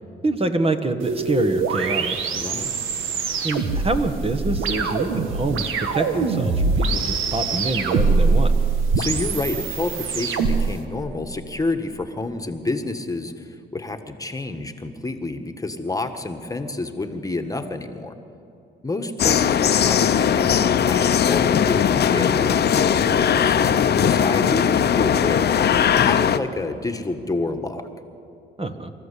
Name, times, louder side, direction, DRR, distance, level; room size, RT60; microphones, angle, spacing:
voice 1, 0.2-2.3 3.4-8.5 28.6-28.9, right 2 dB, 30° right, 7 dB, 1.4 m, -26 dB
sound 1, 1.0-10.8, right 4 dB, 85° right, 1.6 m, -23 dB
voice 2, 2.3-2.7 8.9-18.2 18.8-25.5 26.0-27.9, left 2 dB, 15° left, 6 dB, 1.5 m, -29 dB
sound 2, 19.2-26.4, left 8 dB, 55° left, 0.8 m, -19 dB
25.5 x 14.0 x 8.4 m, 2.7 s
cardioid pair, 90°, 20 cm